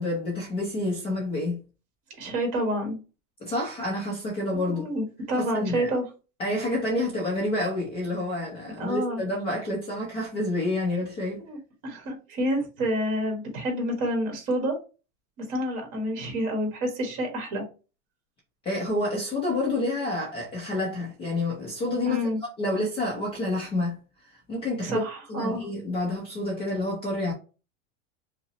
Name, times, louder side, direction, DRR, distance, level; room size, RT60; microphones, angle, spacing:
voice 1, 0.0-1.6 3.4-4.9 5.3-5.9 6.4-11.4 18.6-22.2 22.6-24.0 24.5-25.0 25.3-27.3, left 1 dB, 15° left, 0.5 m, -28 dB
voice 2, 2.2-3.0 4.5-6.0 8.8-9.2 11.5-14.8 15.4-17.6 22.0-22.4 24.8-25.6, equal, 40° right, 1.6 m, -28 dB
5.3 x 2.0 x 2.8 m
supercardioid pair, 170°, 40 cm